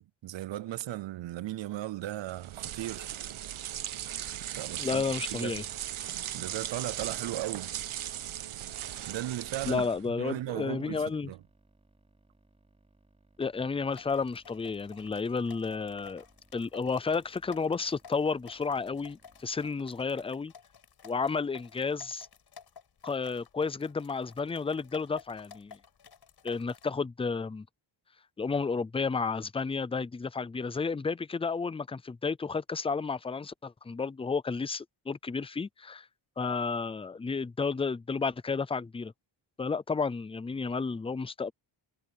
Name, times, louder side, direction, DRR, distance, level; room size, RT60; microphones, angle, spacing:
voice 1, 0.0-3.1 4.5-5.0 5.3-5.6 6.3-7.7 9.0-11.4, right 14 dB, 65° right, 0.6 m, -37 dB
sound 1, 2.3-10.1, right 11 dB, 85° right, 1.2 m, -38 dB
sound 2, 3.7-19.7, right 2 dB, 15° right, 3.3 m, -66 dB
voice 2, 4.8-5.6 9.7-11.3 13.4-16.2 16.5-20.5 21.0-22.3 23.0-25.8 26.4-27.7 28.4-36.1 36.4-39.1 39.6-41.5, left 4 dB, 15° left, 0.3 m, -32 dB
sound 3, 13.9-26.9, left 6 dB, 55° left, 5.3 m, -54 dB
wide cardioid pair, 160°, 48 cm